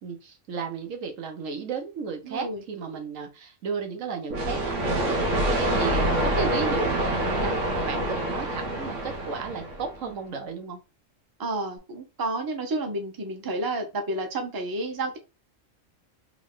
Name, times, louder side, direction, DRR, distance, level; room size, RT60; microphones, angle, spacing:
voice 1, 0.0-10.8, right 5 dB, 90° right, 4 dB, 1.2 m, -34 dB
voice 2, 2.2-2.6 11.4-15.2, right 2 dB, 25° right, 4 dB, 0.5 m, -30 dB
sound 1, 4.3-10.0, right 1 dB, 70° right, 1.2 m, -26 dB
3.6 x 2.3 x 3.6 m, 0.28 s
omnidirectional pair, 1.3 m